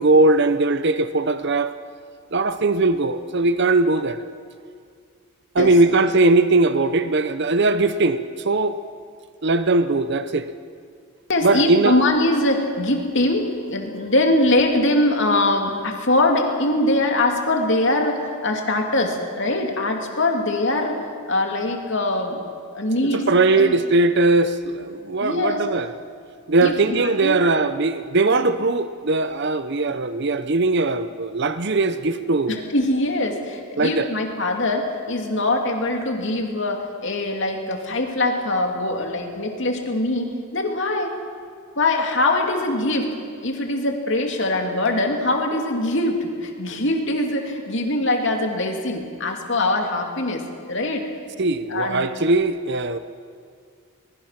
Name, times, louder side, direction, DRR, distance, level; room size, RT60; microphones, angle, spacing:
voice 1, 0.0-1.7 2.3-4.2 5.5-8.8 9.4-10.5 11.4-12.0 23.3-25.9 26.5-32.6 33.8-34.1 51.4-53.0, right 2 dB, 50° right, 11 dB, 0.7 m, -19 dB
voice 2, 11.3-21.0 21.3-22.4 22.7-23.2 23.5-23.7 25.2-25.6 26.6-27.4 32.5-41.1 41.8-43.1 43.4-50.4 50.7-51.1 51.7-52.1, left 2 dB, 55° left, 2 dB, 2.8 m, -22 dB
24.0 x 21.0 x 5.9 m, 2.2 s
head